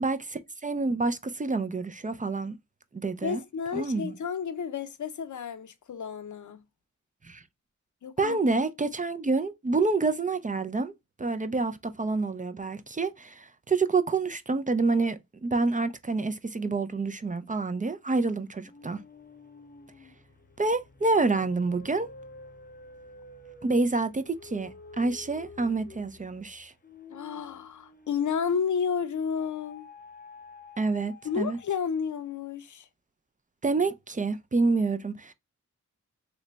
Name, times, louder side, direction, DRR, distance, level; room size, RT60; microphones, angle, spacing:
voice 1, 0.0-2.6 2.9-3.4 3.7-4.1 7.2-7.4 8.2-10.9 11.2-19.0 20.6-22.1 23.6-26.7 30.8-31.6 33.6-35.3, right 3 dB, 25° right, 0.4 m, -28 dB
voice 2, 3.2-6.6 8.0-8.4 27.1-29.9 31.2-32.9, left 6 dB, 75° left, 0.5 m, -31 dB
sound 1, 18.6-28.8 29.4-32.1, left 3 dB, 30° left, 0.7 m, -50 dB
3.1 x 2.1 x 3.8 m
wide cardioid pair, 85°, 30 cm